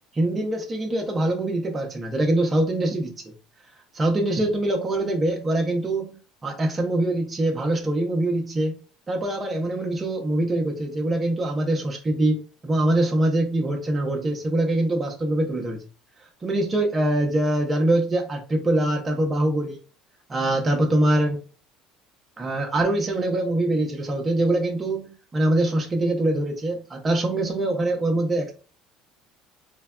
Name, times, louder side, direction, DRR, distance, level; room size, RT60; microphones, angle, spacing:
voice 1, 0.1-3.1 3.9-6.2 6.4-8.8 9.1-15.8 16.4-19.8 20.3-21.4 22.4-28.5, right 1 dB, 25° right, 0.6 m, -23 dB
3.2 x 2.1 x 2.3 m
supercardioid pair, 100°, 0 cm